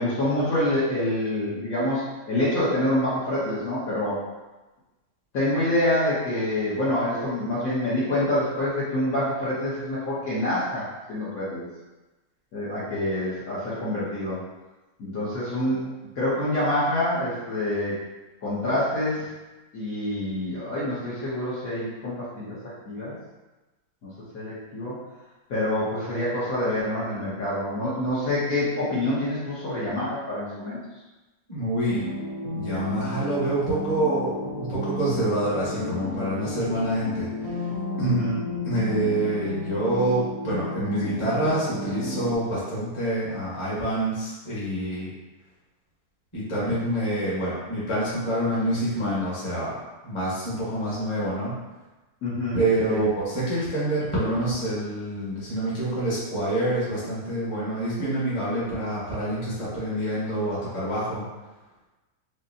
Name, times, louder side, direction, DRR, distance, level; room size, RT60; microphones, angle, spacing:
voice 1, 0.0-2.0 2.3-4.2 5.3-11.6 12.5-14.4 15.0-15.9 16.2-18.0 18.4-19.3 19.7-22.6 22.8-23.1 24.0-25.0 25.5-30.8 38.0-38.4 52.2-53.1, left 1 dB, 55° left, -10 dB, 1.2 m, -26 dB
voice 2, 31.5-32.0 32.5-37.7 38.0-38.2 38.6-45.1 46.3-49.8 50.0-51.5 52.5-61.2, right 1 dB, 20° left, -9 dB, 1.0 m, -27 dB
sound 1, 31.9-42.3, left 2 dB, 65° right, 1.0 m, -32 dB
5.1 x 2.1 x 2.7 m, 1.1 s
omnidirectional pair, 2.0 m